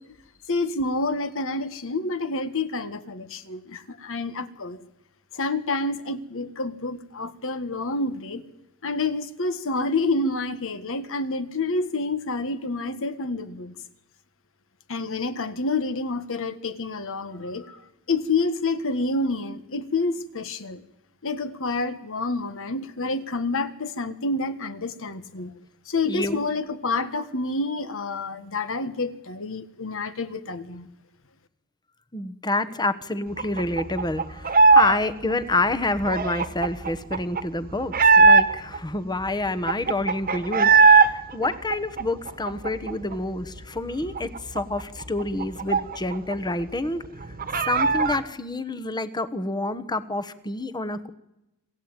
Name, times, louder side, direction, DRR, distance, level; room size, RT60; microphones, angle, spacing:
voice 1, 0.5-4.8 5.3-8.4 8.8-13.7 14.9-17.8 18.1-20.8 21.2-25.5 25.9-30.9, left 3 dB, 65° left, 11 dB, 1.6 m, -28 dB
voice 2, 26.0-26.4 32.1-47.0 47.7-51.1, left 2 dB, 20° left, 11 dB, 1.2 m, -28 dB
sound 1, 33.4-35.0 35.2-38.8 39.2-39.3 39.5-41.1 41.4-43.1 43.5-43.6 43.9-46.3 46.6-46.7 47.0-48.2, right 4 dB, 40° right, 1.5 m, -19 dB
26.5 x 15.0 x 8.9 m, 0.89 s
head